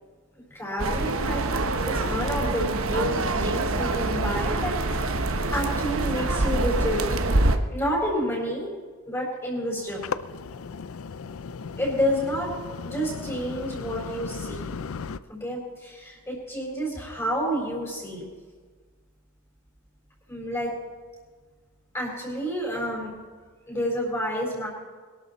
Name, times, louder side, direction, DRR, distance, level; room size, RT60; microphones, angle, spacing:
voice 1, 0.4-5.2 5.5-7.1 7.7-8.7 9.0-10.0 11.8-12.5 12.8-14.8 15.3-18.2 20.3-20.7 21.9-23.1 23.7-24.7, equal, 15° left, -4 dB, 4.1 m, -29 dB
sound 1, 0.8-7.6, right 2 dB, 75° right, 1.1 m, -25 dB
sound 2, 9.8-15.2, left 5 dB, 75° left, 0.5 m, -36 dB
22.0 x 12.5 x 4.1 m, 1.5 s
head